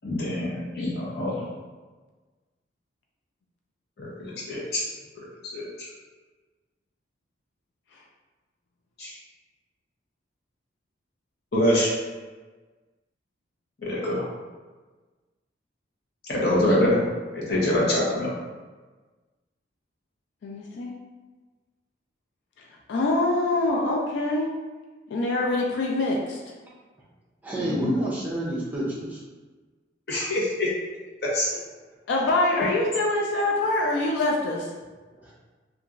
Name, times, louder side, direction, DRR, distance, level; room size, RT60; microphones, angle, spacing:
voice 1, 0.0-1.5 4.0-4.8 5.2-5.9 9.0-9.2 11.5-11.9 13.8-14.2 16.3-17.0 17.3-18.3 27.6-27.9 30.1-30.7 31.3-31.5, left 1 dB, 55° left, -6 dB, 0.8 m, -25 dB
voice 2, 20.4-20.9 22.6-24.5 25.1-26.4 32.1-34.7, left 2 dB, 70° left, -1 dB, 0.3 m, -25 dB
voice 3, 27.4-29.2 35.1-35.3, right 1 dB, 10° right, -7 dB, 0.5 m, -29 dB
2.8 x 2.4 x 2.4 m, 1.3 s
head